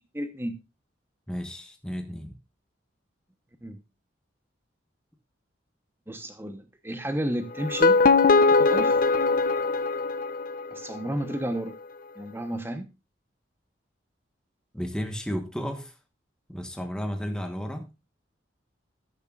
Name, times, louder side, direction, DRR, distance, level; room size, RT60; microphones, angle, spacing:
voice 1, 0.1-0.6 3.6-3.8 6.1-8.0 8.6-9.0 10.7-11.7 12.2-12.9, right 1 dB, 10° right, 1.0 m, -31 dB
voice 2, 1.3-2.3 14.7-15.9 16.5-17.9, equal, 5° left, 1.2 m, -33 dB
sound 1, 7.6-10.8, left 4 dB, 45° left, 0.7 m, -21 dB
14.0 x 11.0 x 2.4 m
head